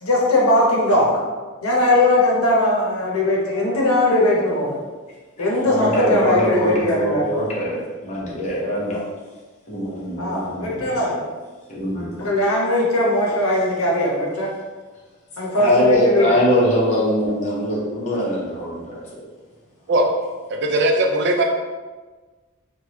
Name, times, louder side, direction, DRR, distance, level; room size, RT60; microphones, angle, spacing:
voice 1, 0.0-1.2 1.6-4.8 5.4-7.4 10.2-11.2 12.2-14.5 15.4-16.3, left 1 dB, 90° left, -2 dB, 0.8 m, -19 dB
voice 2, 5.6-9.0 9.7-11.1 11.7-12.3 15.6-19.2, equal, 35° left, -6 dB, 0.9 m, -22 dB
voice 3, 20.5-21.4, right 1 dB, 55° right, 3 dB, 0.4 m, -19 dB
3.1 x 2.3 x 2.9 m, 1.3 s
head